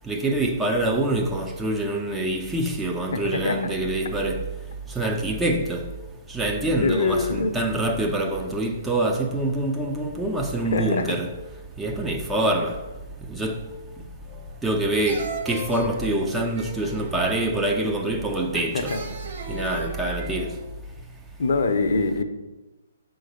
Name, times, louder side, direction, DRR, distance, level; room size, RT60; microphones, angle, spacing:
voice 1, 0.1-4.4 5.0-5.9 6.3-11.3 11.8-12.8 13.3-13.7 14.6-18.9 19.5-20.5, right 1 dB, 5° right, 0.5 m, -25 dB
voice 2, 3.1-3.7 6.8-7.5 10.7-11.1 18.7-19.0 21.4-22.2, left 3 dB, 55° left, 0.7 m, -24 dB
sound 1, 14.3-14.7 15.1-18.1 18.8-20.7, right 3 dB, 40° right, 1.6 m, -37 dB
6.3 x 3.8 x 5.2 m
figure-of-eight pair, 125°, 0 cm